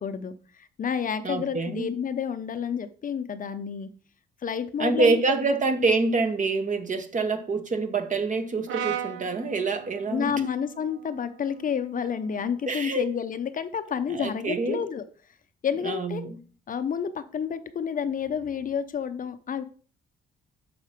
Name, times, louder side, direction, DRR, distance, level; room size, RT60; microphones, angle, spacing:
voice 1, 0.0-3.9 4.4-5.2 5.5-5.6 10.1-15.0 15.6-16.2 16.7-19.6, left 7 dB, 45° left, 0.6 m, -30 dB
voice 2, 1.2-1.9 4.8-10.3 12.7-13.1 14.1-14.8 15.8-16.3, right 3 dB, 40° right, 1.1 m, -26 dB
Brass instrument, 8.7-12.9, right 9 dB, 80° right, 0.8 m, -38 dB
6.5 x 4.3 x 5.1 m
cardioid pair, 90°, 20 cm